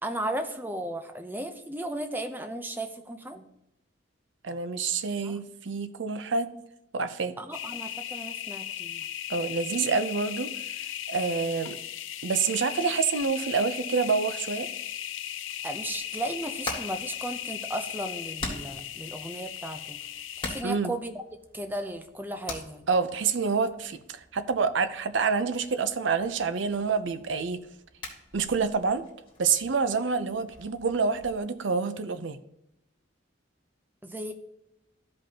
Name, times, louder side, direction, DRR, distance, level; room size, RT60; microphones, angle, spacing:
voice 1, 0.0-3.5 5.2-5.4 7.4-9.0 15.6-21.1 21.5-22.8 30.3-30.4 34.0-34.3, right 1 dB, 10° right, 6 dB, 0.6 m, -35 dB
voice 2, 4.4-6.5 6.9-7.3 9.3-10.5 11.1-11.8 12.2-14.7 20.6-20.9 22.9-27.6 28.3-29.0 29.4-32.4, right 5 dB, 75° right, 12 dB, 0.6 m, -27 dB
sound 1, 7.5-20.6, left 11 dB, 85° left, 0.5 m, -37 dB
Hammer, 16.1-31.4, left 2 dB, 25° left, 1.9 m, -44 dB
13.5 x 5.2 x 2.9 m, 0.84 s
head